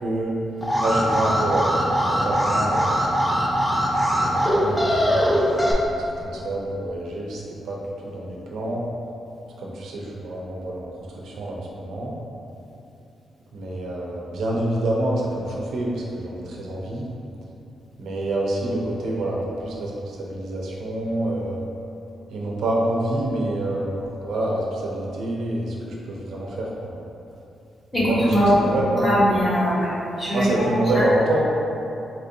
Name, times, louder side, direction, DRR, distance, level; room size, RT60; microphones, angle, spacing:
voice 1, 0.0-0.4 0.8-3.0 4.2-7.8 8.0-8.8 9.6-10.9 11.2-12.2 13.5-17.1 18.0-21.6 22.3-27.0 27.9-29.2 30.3-31.4, right 1 dB, 85° right, -3 dB, 0.5 m, -27 dB
Alarm, 0.6-5.7, equal, 10° left, 0.3 m, -21 dB
voice 2, 27.9-28.5 29.0-29.9 30.2-30.5 30.9-31.0, equal, 30° left, -9 dB, 1.2 m, -20 dB
4.0 x 2.6 x 2.6 m, 2.8 s
cardioid pair, 120°, 0 cm